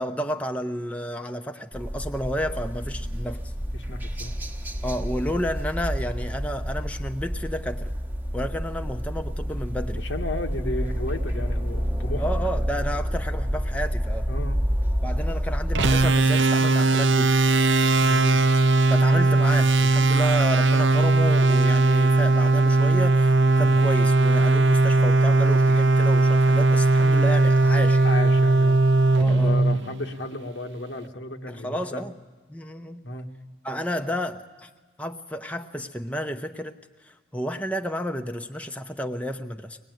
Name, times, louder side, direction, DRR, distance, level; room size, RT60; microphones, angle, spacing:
voice 1, 0.0-3.5 4.8-7.9 8.3-10.0 12.2-14.3 15.0-17.4 18.9-28.1 29.2-29.6 31.5-32.1 32.5-33.0 33.6-34.7 35.0-39.8, equal, 10° left, 6 dB, 0.8 m, -31 dB
sound 1, 1.7-16.1, equal, 10° right, 1.2 m, -29 dB
voice 2, 3.7-4.3 10.0-12.2 14.3-14.6 17.9-18.4 28.0-28.9 29.1-32.0 33.0-33.3, left 1 dB, 90° left, 4 dB, 1.6 m, -33 dB
sound 2, 15.7-30.3, right 2 dB, 85° right, 0.7 m, -19 dB
23.5 x 19.5 x 9.3 m, 1.4 s
head